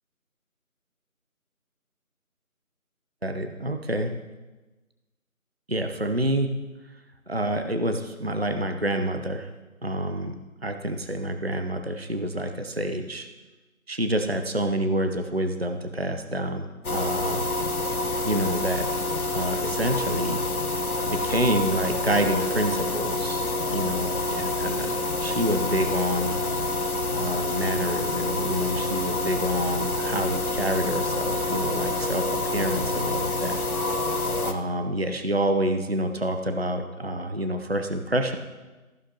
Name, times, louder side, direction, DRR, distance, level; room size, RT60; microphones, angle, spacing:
voice 1, 3.2-4.1 5.7-6.5 7.3-9.5 9.8-10.4 10.6-13.3 13.9-17.5 18.2-18.9 19.3-20.4 21.1-26.4 27.1-33.6 34.0-34.1 34.4-38.4, right 1 dB, 45° right, 7 dB, 0.6 m, -28 dB
sound 1, 16.8-34.5, left 2 dB, 85° left, 1.2 m, -27 dB
14.5 x 11.5 x 2.8 m, 1.2 s
figure-of-eight pair, 175°, 43 cm